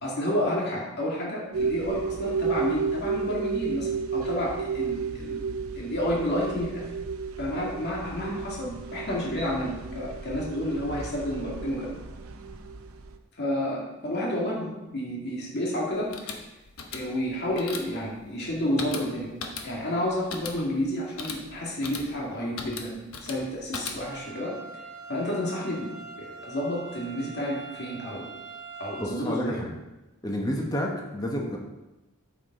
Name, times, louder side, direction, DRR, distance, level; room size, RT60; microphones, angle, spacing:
voice 1, 0.0-6.9 7.4-11.9 13.4-16.3 16.9-19.3 19.6-24.6 25.1-28.3 28.8-29.6, left 1 dB, 50° left, -4 dB, 2.1 m, -30 dB
sound 1, 1.5-13.2, right 5 dB, 80° right, 0.7 m, -33 dB
sound 2, 15.9-24.3, left 4 dB, 85° left, 1.0 m, -39 dB
sound 3, 24.0-29.0, right 4 dB, 35° right, 2.1 m, -43 dB
voice 2, 29.0-29.7 30.2-31.6, equal, 20° left, 0 dB, 1.1 m, -30 dB
8.6 x 7.1 x 3.8 m, 1.0 s
head